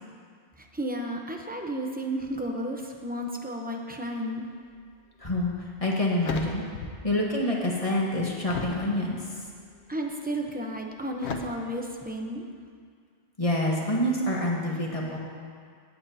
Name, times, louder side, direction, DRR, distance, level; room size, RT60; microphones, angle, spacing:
voice 1, 0.6-4.5 9.9-12.4, right 1 dB, 10° right, 1 dB, 0.8 m, -33 dB
sound 1, 5.2-5.4 5.8-7.2 7.5-8.9 9.5-9.9 11.2-11.4, left 5 dB, 85° left, 1.1 m, -37 dB
voice 2, 5.2-5.5 5.8-6.6 7.0-9.2 13.4-15.2, left 1 dB, 35° left, -3 dB, 1.4 m, -26 dB
16.5 x 9.0 x 2.8 m, 2.1 s
omnidirectional pair, 1.1 m